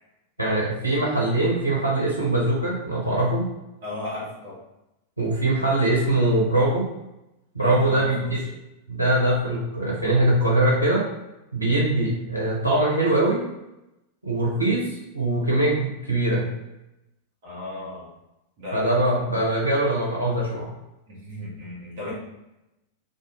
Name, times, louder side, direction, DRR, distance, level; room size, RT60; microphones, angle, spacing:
voice 1, 0.4-3.5 5.2-6.9 7.5-8.4 8.9-11.0 11.5-13.4 14.2-14.9 15.1-16.5 18.7-20.7, right 1 dB, 90° right, -3 dB, 0.8 m, -22 dB
voice 2, 3.8-4.6 7.6-8.3 17.4-18.1 18.6-18.9 21.1-22.1, left 2 dB, 55° right, -7 dB, 1.1 m, -35 dB
2.5 x 2.3 x 3.0 m, 0.93 s
figure-of-eight pair, 90°, 0 cm